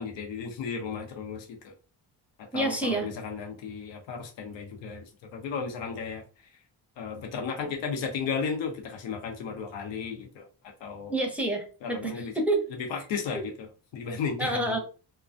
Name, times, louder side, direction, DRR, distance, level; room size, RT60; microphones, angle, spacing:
voice 1, 0.0-1.7 2.5-5.0 5.3-6.2 7.0-10.5 10.8-11.1 11.8-12.3 12.9-13.7 13.9-14.6, left 5 dB, 85° left, 0.8 m, -34 dB
voice 2, 2.5-3.1 11.1-12.7 13.3-13.5 14.4-14.8, right 2 dB, 5° right, 0.7 m, -28 dB
2.2 x 2.2 x 2.5 m
cardioid pair, 90°, 44 cm